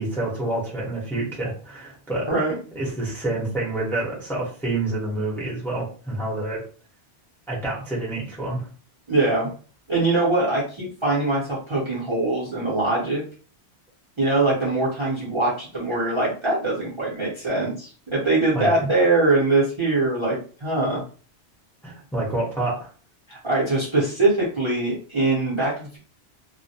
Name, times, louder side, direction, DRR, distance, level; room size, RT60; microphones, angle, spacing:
voice 1, 0.0-2.3 2.7-6.6 7.5-8.7 18.5-18.9 21.8-22.9, right 2 dB, ahead, -6 dB, 0.8 m, -28 dB
voice 2, 9.1-9.5 9.9-13.2 14.2-21.0 23.3-26.0, right 2 dB, 30° right, -6 dB, 0.7 m, -22 dB
2.1 x 2.1 x 2.7 m, 0.40 s
omnidirectional pair, 1.1 m